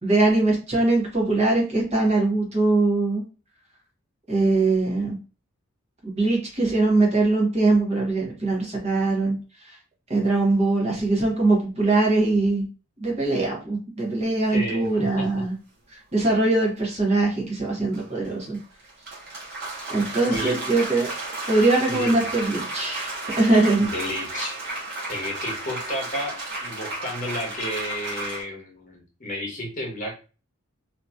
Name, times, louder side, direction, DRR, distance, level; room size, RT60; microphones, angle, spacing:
voice 1, 0.0-3.2 4.3-5.2 6.0-9.4 9.7-9.8 10.1-12.7 13.0-15.5 15.9-18.6 19.9-21.1 21.5-23.1 23.4-23.9, right 2 dB, 30° right, -2 dB, 1.0 m, -22 dB
voice 2, 14.5-15.5 20.2-20.6 21.9-22.2 23.8-24.6 25.1-30.4, left 1 dB, 40° left, -1 dB, 0.9 m, -32 dB
sound 1, 14.8-14.9 17.9-28.4, right 2 dB, 55° right, 1.1 m, -33 dB
2.9 x 2.6 x 2.3 m, 0.35 s
head